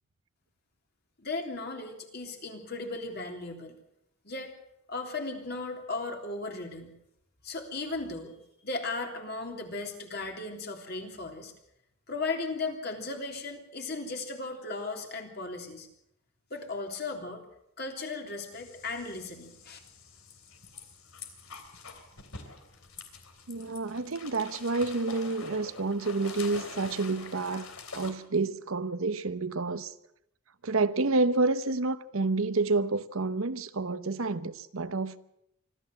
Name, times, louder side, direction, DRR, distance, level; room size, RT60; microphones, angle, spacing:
voice 1, 1.2-3.7 4.2-4.5 4.9-6.9 7.4-8.4 8.6-11.5 12.1-15.9 16.5-17.4 17.8-19.8, left 3 dB, 50° left, 3.3 m, -36 dB
sound 1, 18.5-28.1, left 4 dB, 80° left, 3.2 m, -46 dB
voice 2, 23.5-27.7 27.9-29.9 30.6-35.2, right 3 dB, 75° right, 0.9 m, -29 dB
25.0 x 14.0 x 7.7 m
head